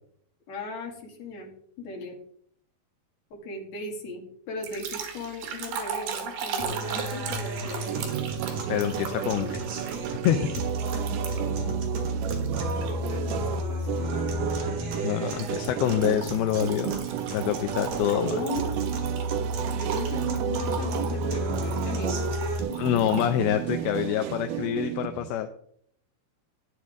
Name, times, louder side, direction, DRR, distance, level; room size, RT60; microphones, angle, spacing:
voice 1, 0.5-1.5 1.8-2.2 3.3-8.2 9.1-9.5 13.0-14.1 18.1-18.8 19.7-22.8, left 1 dB, 50° left, -1 dB, 3.3 m, -37 dB
sound 1, 4.6-11.6 12.2-13.1 13.5-13.8 15.4-23.3, right 7 dB, 75° right, 3.4 m, -38 dB
sound 2, 6.6-22.6, right 1 dB, 55° right, 3.1 m, -32 dB
sound 3, 7.9-25.3, right 11 dB, 90° right, 1.9 m, -33 dB
voice 2, 8.7-9.5 10.2-10.5 15.0-16.9 17.3-18.4 22.7-25.5, left 11 dB, 80° left, 7 dB, 2.5 m, -26 dB
15.0 x 9.3 x 3.7 m, 0.64 s
omnidirectional pair, 4.6 m